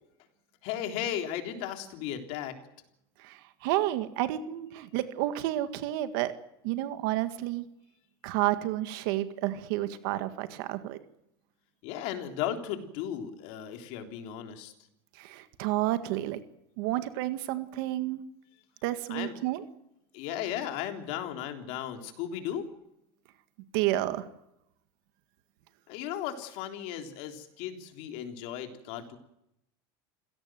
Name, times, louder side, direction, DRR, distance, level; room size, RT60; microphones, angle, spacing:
voice 1, 0.6-2.6 11.8-14.7 19.1-19.3 20.1-22.7 25.9-29.2, left 10 dB, 55° left, 5 dB, 3.7 m, -35 dB
voice 2, 3.2-6.3 6.6-7.6 8.2-11.0 15.2-16.4 16.8-18.2 18.8-19.6 23.7-24.3, right 15 dB, 65° right, 10 dB, 1.9 m, -30 dB
27.0 x 17.0 x 7.7 m, 0.83 s
supercardioid pair, 150°, 13 cm